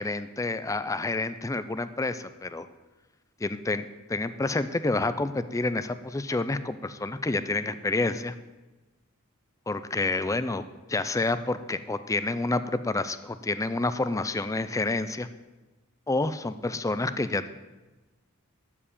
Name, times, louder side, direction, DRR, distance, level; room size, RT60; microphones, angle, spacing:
voice 1, 0.0-2.7 3.4-8.3 9.7-15.3 16.1-17.5, left 2 dB, 15° left, 12 dB, 0.4 m, -29 dB
12.5 x 4.8 x 8.5 m, 1.1 s
head